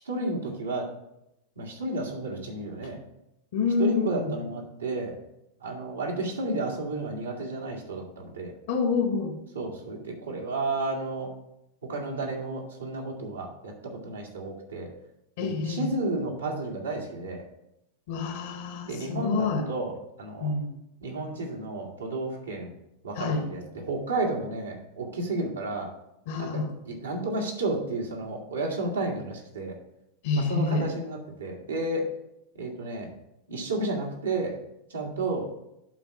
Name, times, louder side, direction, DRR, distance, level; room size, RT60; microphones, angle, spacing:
voice 1, 0.1-0.9 1.6-3.0 3.8-5.2 5.6-8.5 9.5-11.3 11.8-14.9 15.4-17.4 18.9-20.5 21.0-22.7 23.0-25.9 26.4-29.8 30.3-32.1 32.6-33.1 33.5-34.6 34.9-35.5, right 2 dB, 70° right, -1 dB, 2.0 m, -32 dB
voice 2, 3.5-4.3 8.7-9.3 15.4-15.9 18.1-19.7 20.4-20.7 23.1-23.4 26.3-26.7 30.2-30.9, left 4 dB, 55° left, 6 dB, 1.3 m, -27 dB
11.5 x 4.1 x 4.7 m, 0.84 s
figure-of-eight pair, 90°, 0 cm